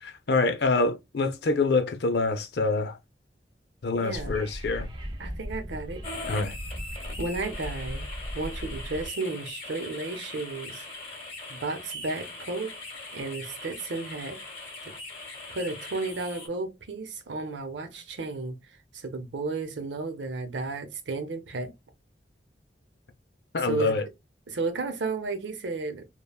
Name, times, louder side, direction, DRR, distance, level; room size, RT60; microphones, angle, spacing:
voice 1, 0.0-3.0 3.8-4.9 6.3-6.5 23.5-24.0, left 3 dB, 65° left, 0.5 m, -26 dB
voice 2, 3.9-4.4 5.2-6.0 7.2-10.8 11.5-12.7 13.1-14.4 14.8-14.9 15.5-18.5 18.9-21.7 23.6-23.9 24.5-26.1, right 3 dB, 85° right, 0.7 m, -33 dB
Wind / Subway metro underground, 4.1-9.1, equal, 25° right, 0.6 m, -37 dB
sound 1, 6.0-16.5, left 2 dB, 35° left, 1.1 m, -41 dB
3.4 x 2.2 x 2.3 m
head